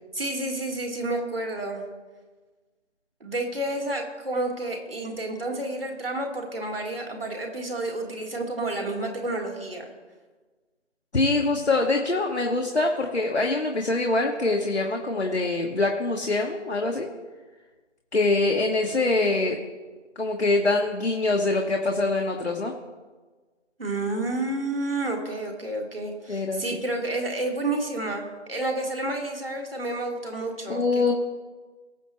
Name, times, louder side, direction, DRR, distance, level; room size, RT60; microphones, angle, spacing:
voice 1, 0.1-1.8 3.2-9.9 23.8-31.2, right 2 dB, 50° right, 1 dB, 1.9 m, -30 dB
voice 2, 11.1-17.1 18.1-19.6 20.2-22.7 26.3-26.8 30.7-31.1, left 2 dB, 65° left, 1 dB, 1.4 m, -24 dB
19.5 x 7.1 x 3.1 m, 1.3 s
figure-of-eight pair, 165°, 36 cm